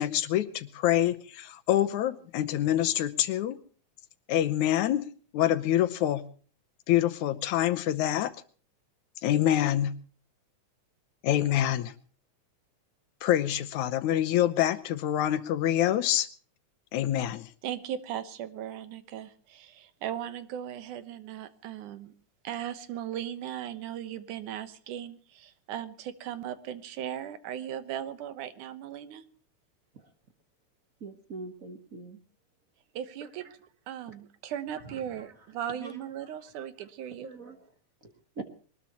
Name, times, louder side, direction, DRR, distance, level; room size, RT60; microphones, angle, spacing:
voice 1, 0.0-3.6 4.3-5.1 5.3-6.2 6.9-8.3 9.2-9.9 11.2-11.9 13.2-16.3 16.9-17.5, left 12 dB, 80° left, 13 dB, 2.3 m, -26 dB
voice 2, 17.6-22.1 22.4-29.2 33.0-33.6 33.9-37.3, right 10 dB, 85° right, 12 dB, 2.7 m, -38 dB
voice 3, 31.0-32.2 35.8-35.9 36.6-36.7 37.2-37.6 38.4-38.5, right 3 dB, 45° right, 7 dB, 1.1 m, -41 dB
22.5 x 20.0 x 3.0 m, 0.42 s
omnidirectional pair, 3.5 m